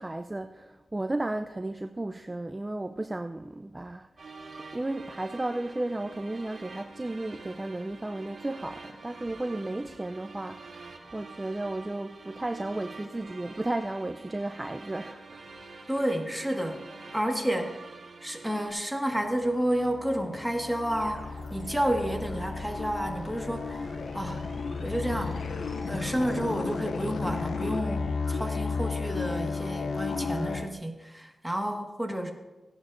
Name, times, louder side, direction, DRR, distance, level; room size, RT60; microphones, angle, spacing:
voice 1, 0.0-4.3 4.7-15.2, right 2 dB, 25° right, 8 dB, 0.4 m, -34 dB
sound 1, 4.2-18.7, right 3 dB, 60° right, 2.6 m, -47 dB
voice 2, 15.9-16.8 17.1-17.8 18.2-23.9 24.1-24.4 24.8-25.4 25.9-32.3, equal, 5° right, 2 dB, 1.6 m, -30 dB
sound 2, 19.3-30.7, left 4 dB, 85° left, 0.6 m, -34 dB
sound 3, 20.9-27.4, right 1 dB, 45° right, 1.3 m, -46 dB
16.5 x 11.0 x 2.5 m, 1.1 s
cardioid pair, 65°, 0 cm